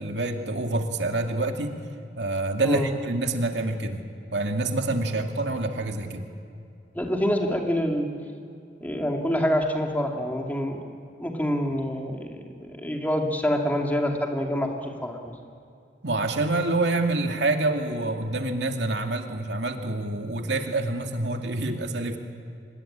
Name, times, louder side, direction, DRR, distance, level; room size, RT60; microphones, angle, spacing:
voice 1, 0.0-1.8 2.2-4.1 4.3-6.3 16.0-22.2, right 2 dB, 85° right, 4 dB, 2.2 m, -27 dB
voice 2, 6.9-8.1 8.8-10.8 11.2-15.2, equal, 10° left, 1 dB, 2.5 m, -26 dB
25.0 x 20.5 x 8.8 m, 2.5 s
head